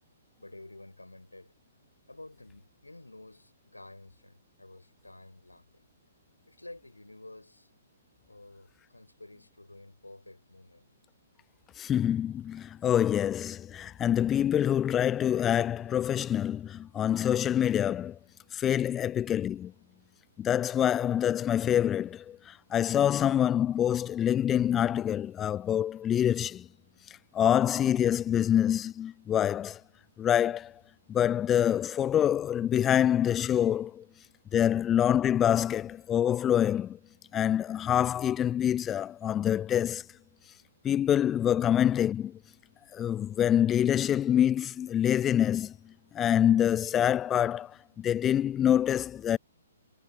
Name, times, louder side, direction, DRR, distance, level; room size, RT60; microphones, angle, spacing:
voice 1, 0.4-1.5 2.1-5.8 6.5-7.7 8.3-10.9 18.6-18.7 33.8-34.0, left 2 dB, 85° left, 8.0 m, -51 dB
voice 2, 11.8-18.2 18.5-19.7 20.4-26.7 27.3-29.8 30.2-30.7 31.1-34.0 34.5-37.0 37.3-40.0 40.8-42.4 42.9-49.4, left 10 dB, 15° left, 0.4 m, -26 dB
figure-of-eight pair, 125°, 0 cm